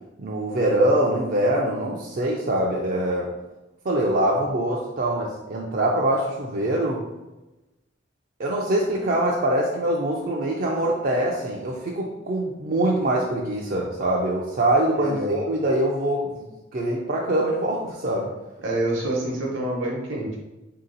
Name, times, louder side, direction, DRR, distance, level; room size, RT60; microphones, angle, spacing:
voice 1, 0.2-3.3 3.8-7.0 8.4-18.3, right 1 dB, 45° right, -3 dB, 0.5 m, -24 dB
voice 2, 15.0-15.3 18.6-20.4, right 1 dB, 70° right, -1 dB, 0.9 m, -27 dB
3.6 x 2.8 x 3.9 m, 1.0 s
head